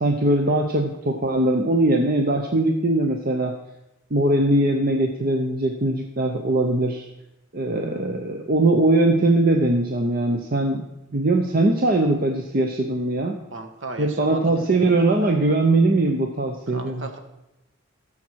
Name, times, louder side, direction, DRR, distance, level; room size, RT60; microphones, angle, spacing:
voice 1, 0.0-3.5 4.1-7.1 7.5-10.8 11.1-13.4 14.0-17.1, right 2 dB, 40° right, 3 dB, 0.8 m, -21 dB
voice 2, 13.5-15.3 16.7-17.2, right 3 dB, 60° right, 5 dB, 1.3 m, -36 dB
15.0 x 7.3 x 4.6 m, 0.91 s
head